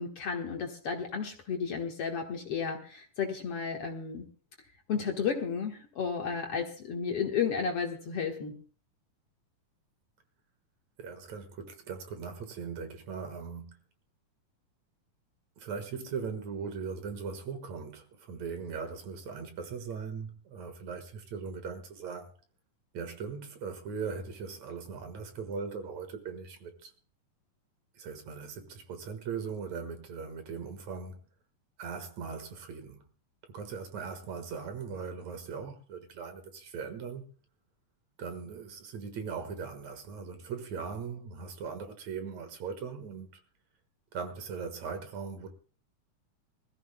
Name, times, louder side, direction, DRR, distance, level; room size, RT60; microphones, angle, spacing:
voice 1, 0.0-4.2 4.9-8.6, left 6 dB, 55° left, 2.0 m, -33 dB
voice 2, 11.0-13.8 15.6-22.3 22.9-26.9 28.0-31.2 31.8-33.0 33.5-37.3 38.2-43.4 44.1-45.5, right 5 dB, 65° right, 2.6 m, -39 dB
24.5 x 14.5 x 2.2 m
omnidirectional pair, 3.6 m